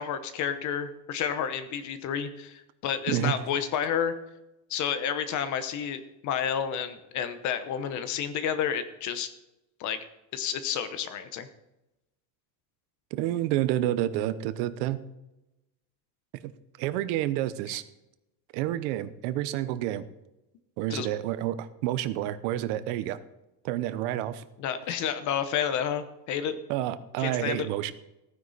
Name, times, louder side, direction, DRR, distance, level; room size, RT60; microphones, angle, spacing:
voice 1, 0.0-4.1 4.7-9.3 9.8-10.0 10.3-11.5 17.7-17.8 20.9-21.1 24.6-26.6 27.2-27.7, left 8 dB, 40° left, 11 dB, 0.9 m, -30 dB
voice 2, 13.1-15.0 16.8-17.8 18.5-20.0 20.8-23.2 23.6-24.4 26.7-27.9, right 13 dB, 80° right, 13 dB, 1.0 m, -29 dB
15.5 x 9.6 x 4.1 m, 0.93 s
cardioid pair, 175°, 47 cm